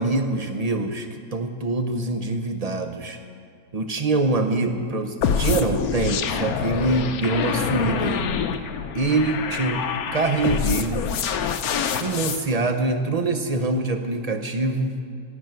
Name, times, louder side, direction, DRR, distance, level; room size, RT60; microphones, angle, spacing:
voice 1, 0.0-3.2 3.7-8.3 8.9-9.8 10.1-11.0 11.9-15.0, right 2 dB, 85° right, 6 dB, 0.3 m, -24 dB
sound 1, 5.2-12.4, left 7 dB, 60° left, 1.2 m, -26 dB
12.0 x 11.5 x 9.2 m, 2.3 s
omnidirectional pair, 1.9 m